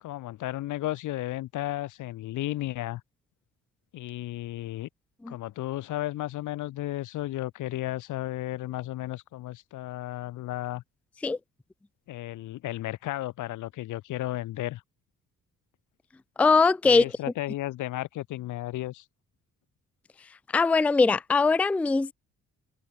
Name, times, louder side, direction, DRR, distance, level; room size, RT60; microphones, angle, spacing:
voice 1, 0.0-3.0 3.9-4.9 5.3-10.8 12.1-14.8 16.8-19.0, left 15 dB, 80° left, 1.2 m, -34 dB
voice 2, 16.4-17.0 20.5-22.1, left 4 dB, 5° left, 0.3 m, -21 dB
cardioid pair, 90°, 30 cm